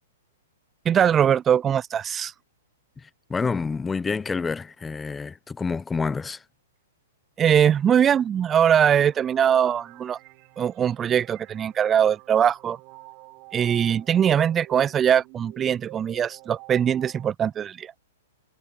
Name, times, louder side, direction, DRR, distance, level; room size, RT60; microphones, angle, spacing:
voice 1, 0.9-2.3 7.4-10.2 10.6-12.8 13.5-17.9, right 9 dB, 20° right, 0.3 m, -21 dB
voice 2, 3.3-6.4, left 4 dB, 10° left, 1.1 m, -28 dB
sound 1, 8.5-17.3, right 29 dB, 40° right, 6.7 m, -48 dB
hypercardioid pair, 125°, 0 cm